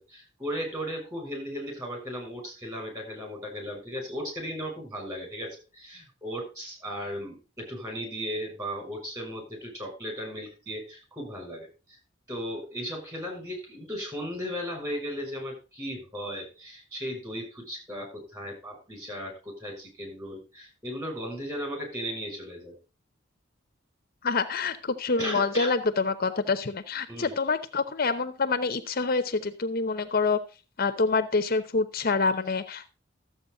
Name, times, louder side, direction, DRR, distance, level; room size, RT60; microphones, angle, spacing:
voice 1, 0.0-11.7 12.3-22.8 25.2-25.7 27.1-27.3, equal, 20° right, 2 dB, 6.4 m, -36 dB
voice 2, 24.2-30.4 30.8-32.9, left 4 dB, 50° left, 10 dB, 0.9 m, -26 dB
13.5 x 7.9 x 3.9 m, 0.31 s
head